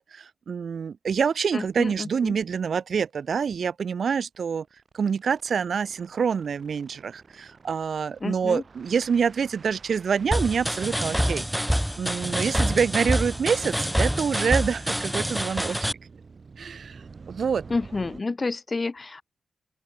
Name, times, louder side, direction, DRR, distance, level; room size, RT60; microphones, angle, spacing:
voice 1, 0.0-4.6 4.9-15.8 16.6-17.0 17.3-17.6, right 6 dB, 75° right, 0.5 m, -26 dB
voice 2, 1.5-2.4 8.2-8.6 17.7-19.2, left 3 dB, 40° left, 3.6 m, -29 dB
sound 1, 2.9-3.0 4.3-18.2, right 4 dB, 55° right, 6.1 m, -48 dB
sound 2, 10.3-15.9, equal, ahead, 0.7 m, -26 dB
open air
cardioid pair, 70°, 0 cm